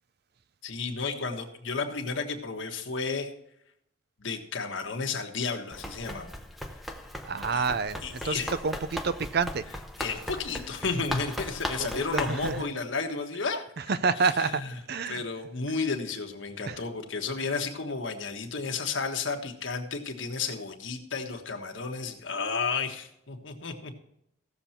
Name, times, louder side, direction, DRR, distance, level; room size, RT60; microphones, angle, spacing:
voice 1, 0.6-3.3 4.2-6.3 7.5-7.7 8.0-8.5 10.0-13.7 14.4-14.7 15.1-24.0, left 4 dB, 70° left, 1.4 m, -32 dB
Run, 5.7-12.6, left 1 dB, ahead, 0.7 m, -37 dB
voice 2, 7.2-9.6 11.8-12.6 13.8-14.6 14.9-15.2 16.7-16.8, right 4 dB, 55° right, 0.5 m, -29 dB
16.0 x 7.0 x 4.3 m
head